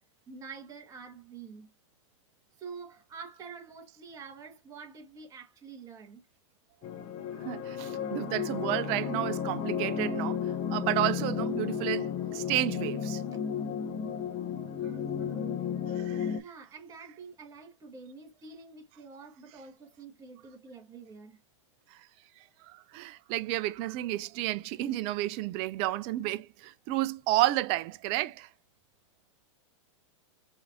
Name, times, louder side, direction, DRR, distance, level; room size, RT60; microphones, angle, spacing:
voice 1, 0.3-1.7 2.6-6.2 16.0-21.4, right 5 dB, 20° right, 1.4 m, -47 dB
sound 1, 6.8-16.4, left 7 dB, 30° left, 0.6 m, -33 dB
voice 2, 7.4-13.2 15.9-16.4 21.9-22.0 22.6-28.5, right 16 dB, 35° right, 0.4 m, -31 dB
5.0 x 2.6 x 2.6 m
hypercardioid pair, 135°, 17 cm